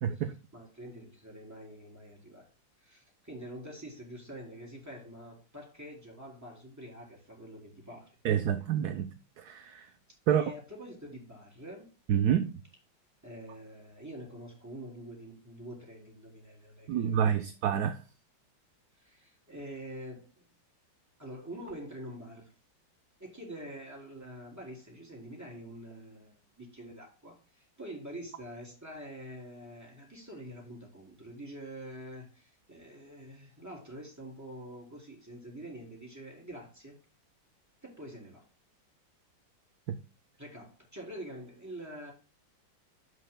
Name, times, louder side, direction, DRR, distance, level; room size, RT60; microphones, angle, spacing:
voice 1, 0.0-0.3 8.2-9.1 9.4-9.9 10.3-10.4 12.1-12.5 16.9-18.0 39.9-40.0, right 9 dB, 65° right, 1.1 m, -28 dB
voice 2, 0.5-2.5 2.8-8.1 8.5-8.6 10.3-11.9 13.2-17.5 19.0-20.4 21.2-22.5 23.2-37.0 37.8-38.5 40.4-42.1, right 1 dB, 10° right, 3.3 m, -46 dB
15.5 x 5.7 x 2.2 m
omnidirectional pair, 2.1 m